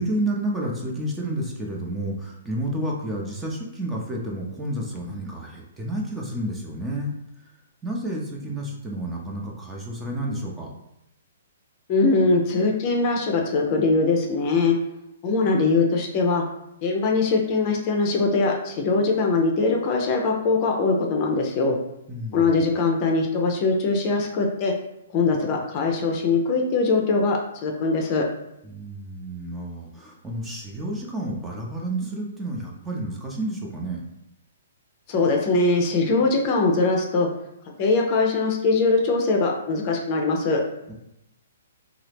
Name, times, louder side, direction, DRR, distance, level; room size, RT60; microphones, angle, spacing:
voice 1, 0.0-7.1 7.8-10.7 22.1-22.6 28.6-34.0 40.9-41.0, right 1 dB, 10° right, -2 dB, 0.6 m, -30 dB
voice 2, 11.9-14.8 15.2-16.4 16.8-21.8 22.3-24.7 25.1-28.2 35.1-37.3 37.8-40.6, left 3 dB, 35° left, 1 dB, 0.5 m, -22 dB
2.7 x 2.4 x 3.4 m, 0.85 s
hypercardioid pair, 130°, 0 cm